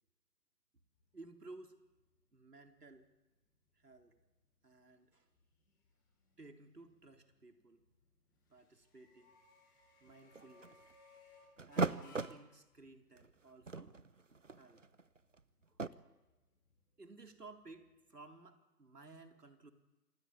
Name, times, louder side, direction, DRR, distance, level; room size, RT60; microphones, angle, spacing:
sound 1, 0.9-18.1, left 3 dB, 10° left, 4.2 m, -68 dB
voice 1, 1.1-1.8 2.3-3.1 3.7-4.1 4.6-5.3 6.4-7.8 8.5-9.3 10.0-10.8 11.7-14.0 14.5-14.8 15.7-15.8 17.0-19.7, right 3 dB, 70° right, 6 dB, 4.1 m, -56 dB
sound 2, 10.1-10.9 11.6-12.4 13.2-13.3 13.6-15.9, right 4 dB, 50° right, 1.0 m, -39 dB
27.0 x 20.0 x 8.8 m, 1.1 s
figure-of-eight pair, 170°, 49 cm